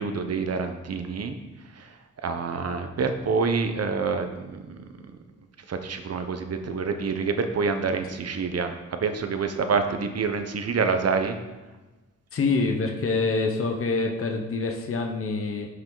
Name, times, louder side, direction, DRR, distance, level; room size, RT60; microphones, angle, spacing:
voice 1, 0.0-1.4 1.8-1.9 2.2-4.8 5.7-11.4, right 5 dB, 55° right, 7 dB, 1.0 m, -27 dB
voice 2, 12.3-15.7, left 3 dB, 50° left, 2 dB, 1.0 m, -26 dB
11.0 x 5.8 x 4.0 m, 1.2 s
cardioid pair, 80°, 30 cm